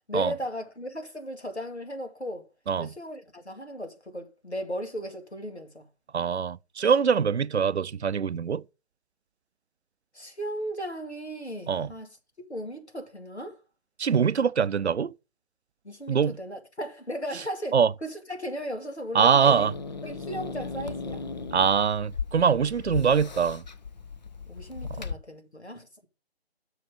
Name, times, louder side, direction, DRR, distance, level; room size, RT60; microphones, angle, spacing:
voice 1, 0.1-2.5 2.8-5.9 10.1-12.1 12.4-13.6 15.8-19.7 20.0-21.3 24.5-25.9, equal, 90° left, 2.2 m, -36 dB
voice 2, 6.1-8.6 11.7-11.9 14.0-15.1 16.1-16.4 17.7-17.9 19.1-19.7 21.5-23.6, right 6 dB, 85° right, 0.5 m, -23 dB
Growling / Hiss, 19.4-25.1, left 4 dB, 40° left, 0.7 m, -37 dB
6.4 x 5.2 x 6.8 m
figure-of-eight pair, 150°, 32 cm